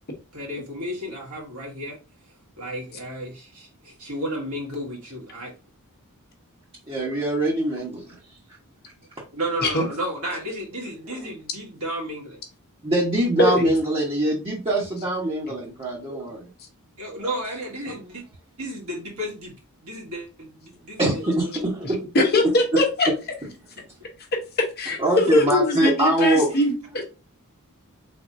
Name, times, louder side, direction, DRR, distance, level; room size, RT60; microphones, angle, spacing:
voice 1, 0.3-2.0 2.6-5.5 9.3-12.4 17.0-18.2 18.6-19.5 19.8-21.0 21.4-21.7 23.8-23.9 25.3-25.4, equal, 75° right, 1.9 m, -33 dB
voice 2, 6.9-8.2 12.8-16.5 17.1-17.3 17.9-18.0 21.0-22.8 23.1-23.2 25.0-26.5, right 1 dB, 25° right, 1.0 m, -23 dB
voice 3, 22.1-23.1 24.3-27.0, left 1 dB, 45° left, 0.9 m, -21 dB
4.2 x 3.5 x 2.6 m
head